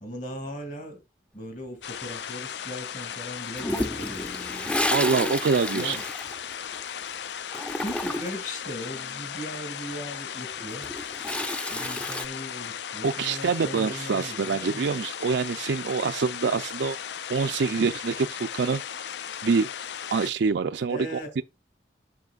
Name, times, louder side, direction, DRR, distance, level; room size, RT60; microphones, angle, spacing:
voice 1, 0.0-1.0 1.3-4.8 5.7-6.0 7.8-10.9 11.7-14.9 20.9-21.4, equal, 45° left, 2.3 m, -38 dB
sound 1, 1.8-20.3, left 9 dB, 75° left, 0.4 m, -36 dB
Toilet flush, 3.6-7.0 7.3-8.5 10.5-12.3, left 1 dB, 5° left, 0.5 m, -31 dB
voice 2, 4.9-6.0 13.0-17.0 17.3-18.8 19.4-19.7 20.1-21.0 21.4-21.5, right 5 dB, 80° right, 0.4 m, -25 dB
10.5 x 6.4 x 2.4 m
head